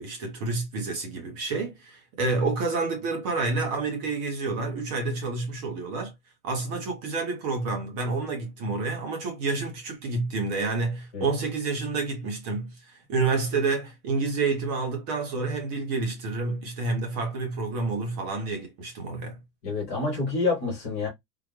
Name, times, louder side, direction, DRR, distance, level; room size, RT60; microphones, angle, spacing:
voice 1, 0.0-6.1 6.4-19.4, right 3 dB, 25° right, 0.7 m, -29 dB
voice 2, 19.6-21.1, left 3 dB, 10° left, 0.4 m, -27 dB
3.7 x 2.1 x 3.0 m
supercardioid pair, 180°, 49 cm